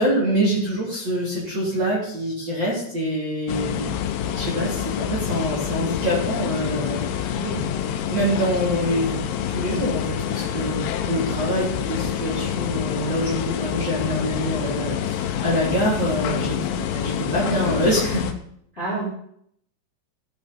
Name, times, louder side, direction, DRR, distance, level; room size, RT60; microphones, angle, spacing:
voice 1, 0.0-3.9 4.4-7.4 8.1-9.2 9.5-10.8 11.1-16.6 16.9-18.3, equal, 25° right, -6 dB, 3.3 m, -25 dB
sound 1, 3.5-18.3, left 9 dB, 80° left, 3.1 m, -27 dB
voice 2, 7.3-7.9 16.5-16.8 18.7-19.1, right 2 dB, 15° left, -4 dB, 2.7 m, -31 dB
15.5 x 8.7 x 4.3 m, 0.67 s
omnidirectional pair, 5.8 m